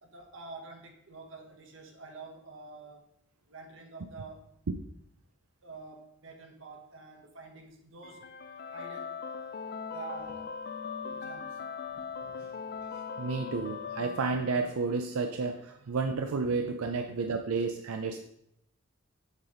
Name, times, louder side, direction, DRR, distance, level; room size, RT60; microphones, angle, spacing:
voice 1, 0.0-3.0 3.5-4.6 5.6-8.3 8.7-9.2 9.9-10.5 11.0-11.6 12.8-12.9, right 3 dB, 60° right, 2 dB, 1.3 m, -47 dB
sound 1, 8.0-15.0, left 6 dB, 45° left, 0.4 m, -40 dB
voice 2, 13.2-18.2, right 4 dB, 90° right, 5 dB, 0.5 m, -31 dB
7.1 x 4.1 x 5.1 m, 0.75 s
head